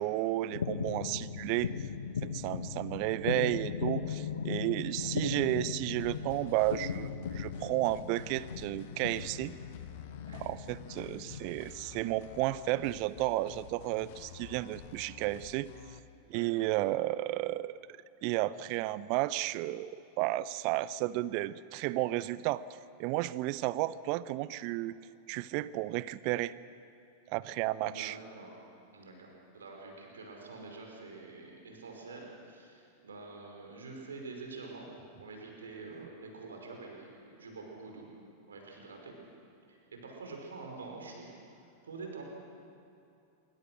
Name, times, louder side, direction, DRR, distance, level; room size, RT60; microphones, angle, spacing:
voice 1, 0.0-1.7 2.2-9.5 10.3-15.7 16.3-17.7 18.2-19.9 20.2-22.6 23.0-24.9 25.3-26.5 27.3-28.2, right 16 dB, 45° right, 18 dB, 0.6 m, -32 dB
sound 1, 0.5-11.4, left 6 dB, 70° left, 1.3 m, -38 dB
sound 2, 6.0-16.0, left 11 dB, 50° left, 1.2 m, -50 dB
voice 2, 16.3-16.6 27.8-28.5 28.9-34.9 35.2-38.1 38.5-39.2 39.7-41.3 41.8-42.2, right 3 dB, 70° right, 1 dB, 5.4 m, -46 dB
26.0 x 23.5 x 6.4 m, 2.6 s
figure-of-eight pair, 90°, 0 cm